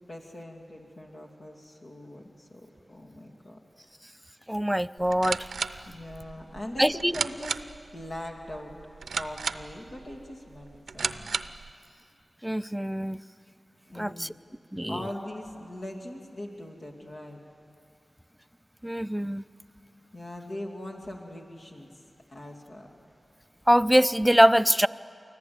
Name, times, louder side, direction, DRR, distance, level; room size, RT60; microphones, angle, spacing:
voice 1, 0.1-3.6 5.8-7.6 7.9-11.4 13.9-14.3 14.9-17.4 20.1-21.9 22.3-22.9, left 1 dB, 60° left, 0 dB, 2.5 m, -41 dB
voice 2, 4.5-5.5 6.8-7.1 12.4-13.2 13.9-14.3 14.7-15.0 18.8-19.4 23.7-24.9, equal, 5° right, 15 dB, 0.5 m, -23 dB
sound 1, 5.0-11.7, right 5 dB, 85° right, 0.5 m, -35 dB
24.0 x 15.0 x 9.5 m, 2.6 s
cardioid pair, 40°, 0 cm